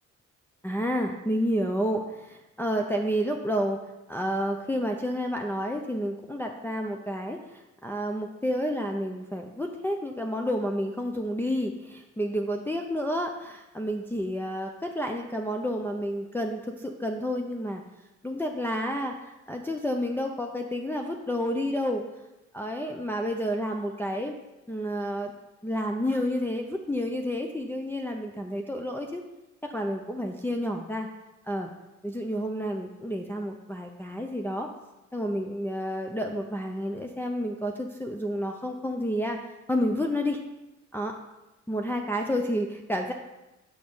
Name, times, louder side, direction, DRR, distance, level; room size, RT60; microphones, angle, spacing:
voice 1, 0.6-3.8 4.1-17.8 18.2-22.0 22.5-24.3 24.7-25.3 25.6-29.2 29.6-31.1 31.5-31.7 32.0-34.7 35.1-39.4 39.7-40.4 40.9-41.1 41.7-43.1, equal, 5° left, 1 dB, 0.5 m, -30 dB
6.3 x 4.9 x 5.5 m, 1.0 s
cardioid pair, 90°, 30 cm